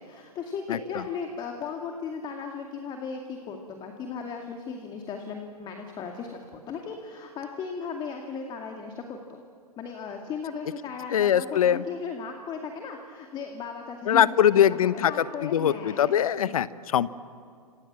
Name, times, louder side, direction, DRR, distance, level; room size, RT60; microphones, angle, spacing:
voice 1, 0.0-9.4 9.8-16.3, left 5 dB, 25° left, 3 dB, 2.3 m, -36 dB
voice 2, 0.7-1.0 11.1-11.8 14.1-17.1, left 10 dB, 60° left, 16 dB, 1.1 m, -22 dB
28.5 x 27.0 x 7.5 m, 2.3 s
hypercardioid pair, 120°, 20 cm